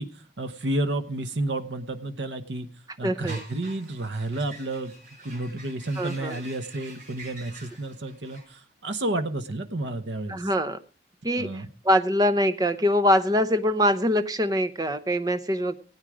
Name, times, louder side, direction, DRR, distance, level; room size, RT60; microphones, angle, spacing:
voice 1, 0.0-2.7 3.0-4.9 5.2-10.5 11.4-11.7, right 2 dB, 85° right, 10 dB, 1.0 m, -31 dB
voice 2, 3.0-3.4 6.0-6.4 10.3-10.8 11.2-15.8, equal, 20° right, 11 dB, 0.7 m, -24 dB
sound 1, 3.2-8.4, right 2 dB, 45° right, 4.9 m, -46 dB
17.0 x 9.1 x 4.9 m, 0.40 s
head